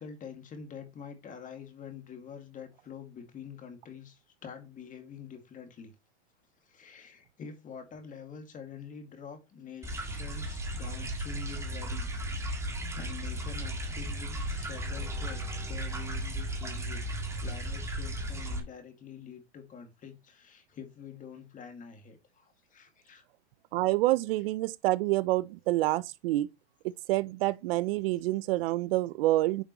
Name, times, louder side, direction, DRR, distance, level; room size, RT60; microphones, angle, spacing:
voice 1, 0.0-5.9 6.6-12.1 12.9-23.2, left 7 dB, 25° left, 2.1 m, -46 dB
sound 1, 9.8-18.6, right 1 dB, 10° right, 1.7 m, -35 dB
voice 2, 23.7-26.5 27.1-29.6, right 17 dB, 55° right, 0.6 m, -27 dB
9.8 x 5.2 x 3.0 m
supercardioid pair, 135°, 34 cm